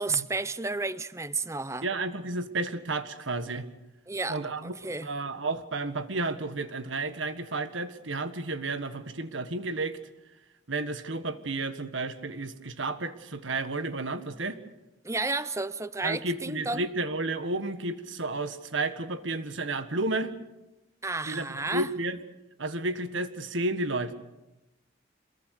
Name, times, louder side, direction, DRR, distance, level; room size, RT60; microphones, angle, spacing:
voice 1, 0.0-1.9 4.1-5.1 15.0-16.9 21.0-21.9, right 3 dB, 15° right, 0.7 m, -32 dB
voice 2, 1.8-3.7 4.3-4.7 5.0-10.0 10.7-14.6 16.0-20.3 21.3-22.2 22.6-24.1, right 2 dB, 75° right, 1.6 m, -32 dB
26.5 x 21.5 x 6.6 m
head